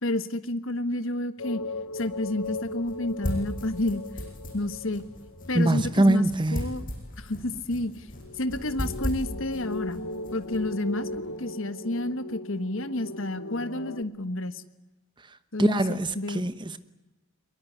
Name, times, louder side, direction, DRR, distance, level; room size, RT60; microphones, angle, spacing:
voice 1, 0.0-1.6 1.9-4.0 4.5-5.0 5.5-6.2 6.5-6.9 7.2-8.1 8.4-10.0 10.3-14.6 15.5-16.4, left 1 dB, 65° left, 1.4 m, -30 dB
sound 1, 1.4-6.5 8.2-14.0, left 2 dB, 80° left, 1.3 m, -38 dB
sound 2, 1.5-11.4, equal, 40° left, 7.4 m, -38 dB
voice 2, 5.5-6.7 15.6-16.8, right 1 dB, 20° right, 1.0 m, -23 dB
22.5 x 22.0 x 9.6 m
head